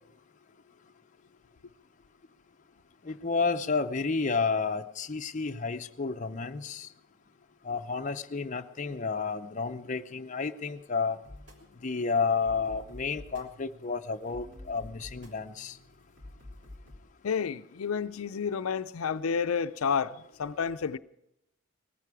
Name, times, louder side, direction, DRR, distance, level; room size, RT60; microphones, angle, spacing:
voice 1, 3.0-6.9 7.6-11.2 11.8-15.8, left 4 dB, 35° left, 0.6 m, -31 dB
sound 1, 11.2-17.0, left 1 dB, 55° right, 3.0 m, -49 dB
voice 2, 17.2-21.0, left 6 dB, 90° left, 0.5 m, -30 dB
19.5 x 15.0 x 4.7 m
head